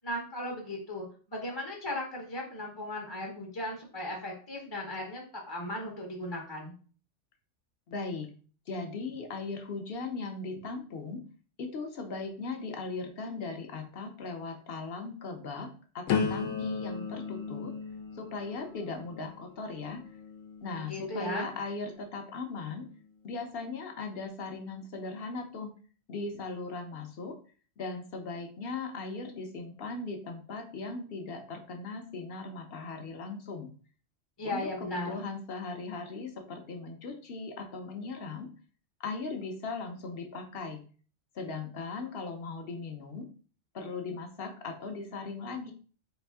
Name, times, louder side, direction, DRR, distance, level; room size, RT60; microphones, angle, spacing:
voice 1, 0.0-6.7 20.9-21.5 34.4-35.2, left 1 dB, 25° left, -2 dB, 0.6 m, -37 dB
voice 2, 7.9-8.3 8.7-11.2 11.6-15.7 15.9-17.7 18.1-20.0 20.6-22.9 23.2-25.7 26.1-27.3 27.8-33.7 34.4-38.5 39.0-40.8 41.3-43.3 43.7-45.7, left 3 dB, 60° left, 4 dB, 0.8 m, -38 dB
sound 1, 16.1-21.9 22.5-22.9, left 6 dB, 90° left, 1.0 m, -36 dB
4.1 x 2.5 x 3.4 m, 0.41 s
omnidirectional pair, 1.3 m